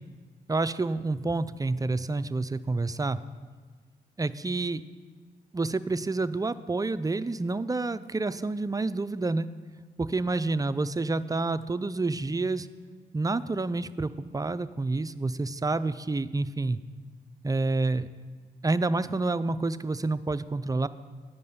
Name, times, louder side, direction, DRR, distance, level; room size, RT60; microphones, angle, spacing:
voice 1, 0.5-3.2 4.2-4.8 5.5-9.5 10.0-12.7 13.1-16.8 17.4-18.1 18.6-20.9, right 3 dB, 20° right, 14 dB, 0.4 m, -28 dB
9.3 x 5.4 x 6.7 m, 1.5 s
supercardioid pair, 45°, 19 cm